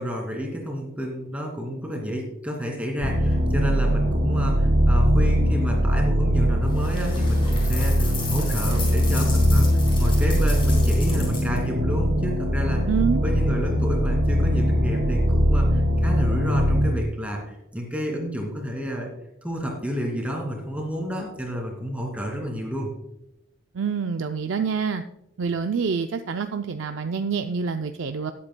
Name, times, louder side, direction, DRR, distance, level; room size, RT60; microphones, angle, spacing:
voice 1, 0.0-9.7 10.0-12.8 13.2-19.1 19.4-22.9, equal, 5° right, 0 dB, 2.4 m, -30 dB
sound 1, 3.0-16.9, equal, 85° right, 2.0 m, -21 dB
sound 2, 6.7-11.6, left 3 dB, 25° left, 4.0 m, -35 dB
voice 2, 12.9-13.2 23.7-25.0 25.4-28.3, right 6 dB, 65° right, 7 dB, 0.4 m, -26 dB
19.0 x 8.5 x 2.2 m, 0.87 s
head